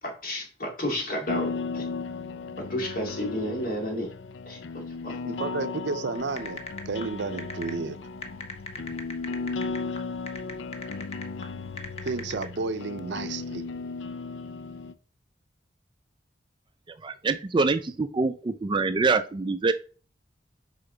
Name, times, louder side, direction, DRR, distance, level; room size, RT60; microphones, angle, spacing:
voice 1, 0.0-1.9 2.7-4.1 4.5-5.2, equal, 50° left, 2.3 m, -32 dB
sound 1, 1.3-14.9, left 4 dB, 85° left, 0.5 m, -35 dB
voice 2, 5.2-8.0 12.0-13.7, right 4 dB, 75° right, 0.6 m, -32 dB
sound 2, 6.2-12.4, left 3 dB, 35° left, 1.0 m, -40 dB
voice 3, 17.0-19.7, right 3 dB, 25° right, 0.4 m, -25 dB
6.8 x 5.0 x 3.9 m
head